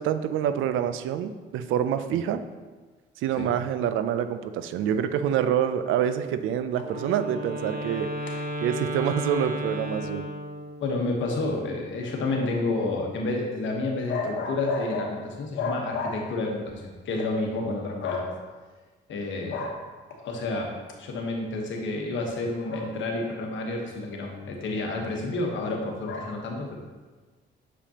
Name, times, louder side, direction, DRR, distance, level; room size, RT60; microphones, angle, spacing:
voice 1, 0.0-2.4 3.2-8.1 8.6-10.3, right 9 dB, 85° right, 11 dB, 0.4 m, -26 dB
Wind instrument woodwind instrument, 6.8-10.9, right 1 dB, 50° right, 1.2 m, -33 dB
voice 2, 10.8-18.3 19.1-19.8 20.1-26.8, left 2 dB, 70° left, 1 dB, 1.2 m, -29 dB
6.9 x 5.0 x 2.9 m, 1.3 s
cardioid pair, 90°, 20 cm